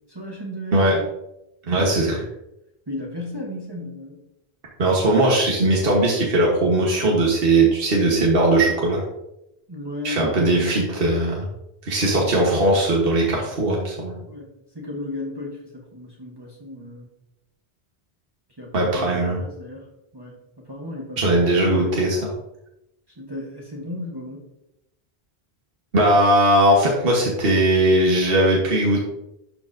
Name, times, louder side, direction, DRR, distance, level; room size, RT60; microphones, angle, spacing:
voice 1, 0.1-1.1 1.7-2.0 2.9-4.2 9.7-10.7 14.2-14.5 14.7-17.1 18.6-19.9 20.1-21.4 23.2-24.5, left 1 dB, 25° right, -3 dB, 1.2 m, -35 dB
voice 2, 1.7-2.2 4.8-9.0 10.0-11.5 11.8-14.1 18.7-19.4 21.2-22.3 25.9-29.0, right 1 dB, 65° right, -3 dB, 1.5 m, -19 dB
12.0 x 4.7 x 2.7 m, 0.86 s
omnidirectional pair, 1.1 m